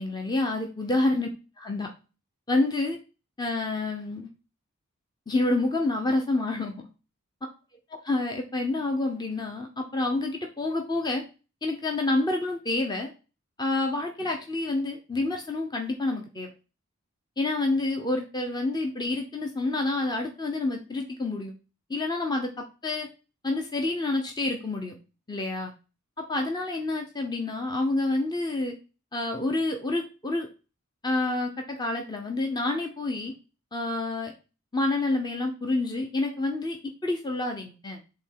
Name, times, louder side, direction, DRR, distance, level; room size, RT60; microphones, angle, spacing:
voice 1, 0.0-1.3 1.6-1.9 2.5-3.0 3.4-4.3 5.3-6.9 8.1-11.2 11.6-13.1 13.6-16.5 17.4-21.5 21.9-23.1 23.4-25.0 25.3-25.7 26.2-28.8 29.1-30.5 31.0-33.3 33.7-34.3 34.7-38.0, left 2 dB, 20° left, 3 dB, 0.8 m, -28 dB
5.3 x 3.7 x 5.6 m, 0.32 s
head